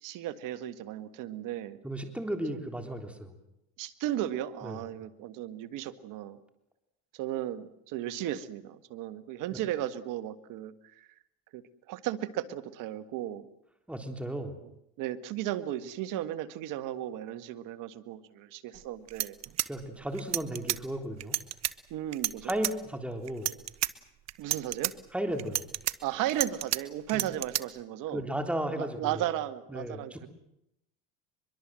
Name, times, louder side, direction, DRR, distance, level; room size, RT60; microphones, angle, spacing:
voice 1, 0.0-1.8 3.8-6.4 7.1-11.1 11.5-11.6 11.9-13.5 15.0-19.4 21.9-22.5 24.4-24.9 26.0-28.2 28.8-30.3, right 12 dB, 70° right, 12 dB, 1.9 m, -35 dB
voice 2, 1.8-3.4 4.6-4.8 13.9-14.6 19.6-21.4 22.4-23.5 25.1-25.7 27.1-27.2 28.1-29.3 29.7-30.3, right 1 dB, 5° right, 5 dB, 3.7 m, -34 dB
sound 1, 18.7-18.8 19.1-20.8 21.2-21.7 22.1-22.7 23.3-23.9 24.3-24.9 25.4-26.8 27.1-27.6, right 13 dB, 50° right, 1.2 m, -30 dB
23.5 x 23.0 x 7.7 m, 0.82 s
supercardioid pair, 100°, 33 cm